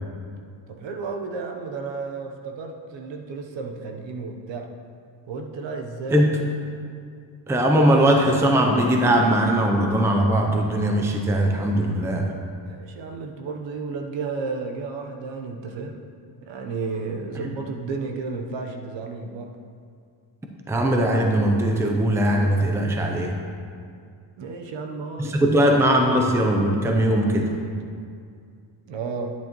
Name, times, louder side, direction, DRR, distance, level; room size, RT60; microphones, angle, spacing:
voice 1, 0.7-4.7 5.3-6.5 12.6-16.0 16.4-19.5 24.4-25.6 28.9-29.3, right 4 dB, 65° right, 3 dB, 1.0 m, -32 dB
voice 2, 7.5-12.2 17.4-17.5 20.7-23.3 25.2-27.5, right 1 dB, 5° right, 2 dB, 0.5 m, -20 dB
10.5 x 9.2 x 3.0 m, 2.3 s
cardioid pair, 155°, 48 cm